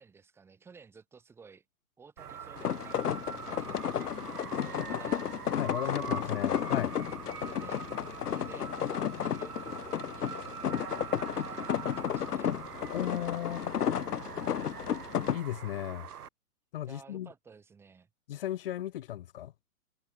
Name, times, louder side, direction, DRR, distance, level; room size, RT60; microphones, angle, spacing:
voice 1, 0.0-1.6 2.0-6.6 7.4-12.6 16.9-18.1, right 5 dB, 5° right, 2.7 m, -55 dB
sound 1, 2.2-16.3, right 8 dB, 80° right, 3.8 m, -44 dB
sound 2, 2.6-15.4, left 9 dB, 85° left, 1.6 m, -33 dB
voice 2, 5.6-6.9 12.9-13.8 15.3-16.1 16.7-17.3 18.3-19.5, left 12 dB, 40° left, 1.8 m, -35 dB
hypercardioid pair, 175°, 45 cm